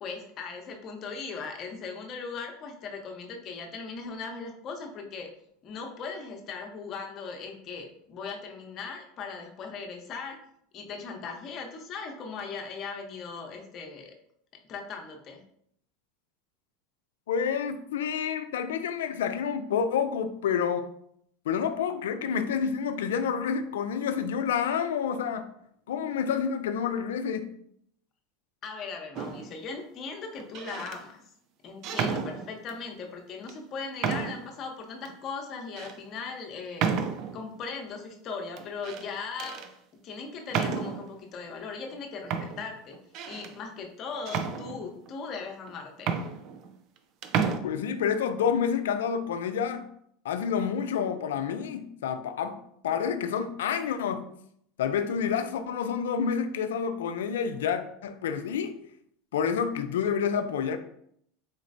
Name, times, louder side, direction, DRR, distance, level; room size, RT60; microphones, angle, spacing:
voice 1, 0.0-5.3 5.6-10.4 10.7-14.1 14.7-15.4 28.6-31.2 31.6-36.9 37.3-39.7 40.0-43.0 43.3-46.2, left 5 dB, 45° left, 3 dB, 0.8 m, -38 dB
voice 2, 17.3-20.9 21.5-25.5 25.9-27.5 47.6-49.9 50.2-52.6 52.8-54.2 54.8-58.7 59.3-60.8, left 7 dB, 85° left, 9 dB, 0.4 m, -28 dB
sound 1, 29.2-29.6 30.4-31.0 31.8-32.8 33.5-33.6 34.0-34.5 35.1-35.2 35.8-36.0 36.8-37.5 38.6-39.1 39.4-39.7 40.5-41.1 41.9-42.0 42.3-43.5 44.3-45.1 45.7-45.8 46.0-47.0 47.2-47.6, right 6 dB, 55° right, 0.4 m, -31 dB
4.2 x 3.0 x 2.5 m, 0.69 s
hypercardioid pair, 95°, 0 cm